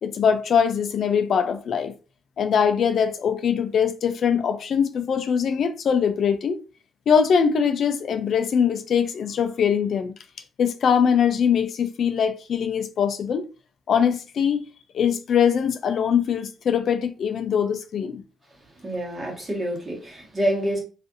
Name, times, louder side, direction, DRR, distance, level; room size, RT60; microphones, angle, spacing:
voice 1, 0.0-1.9 2.4-6.6 7.1-10.1 10.6-13.5 13.9-14.6 14.9-18.2, left 7 dB, 60° left, 0.3 m, -22 dB
voice 2, 18.8-20.8, equal, 25° right, 1.2 m, -27 dB
2.5 x 2.4 x 2.5 m
cardioid pair, 90°, 0 cm